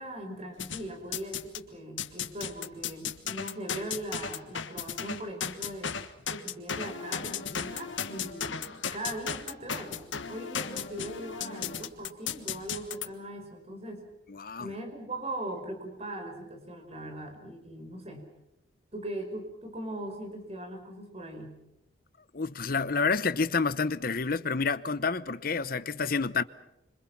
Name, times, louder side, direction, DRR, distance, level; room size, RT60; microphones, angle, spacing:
voice 1, 0.0-5.9 6.3-14.1 14.6-18.3 18.9-21.6, right 1 dB, 35° right, 5.3 m, -40 dB
sound 1, 0.6-1.6 2.0-13.1, left 7 dB, 85° left, 1.5 m, -36 dB
voice 2, 14.3-14.7 22.3-26.4, left 4 dB, 50° left, 0.9 m, -29 dB
27.0 x 25.5 x 6.0 m
head